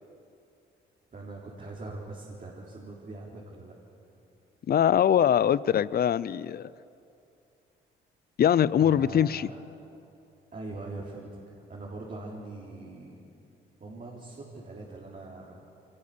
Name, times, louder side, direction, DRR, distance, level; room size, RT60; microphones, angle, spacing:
voice 1, 1.1-3.7 8.8-9.6 10.5-11.4 11.7-13.2 13.8-15.7, right 2 dB, 40° right, -3 dB, 3.9 m, -42 dB
voice 2, 4.7-6.7 8.4-9.5, left 9 dB, 50° left, 20 dB, 0.6 m, -23 dB
24.0 x 20.0 x 6.8 m, 2.7 s
supercardioid pair, 65°, 21 cm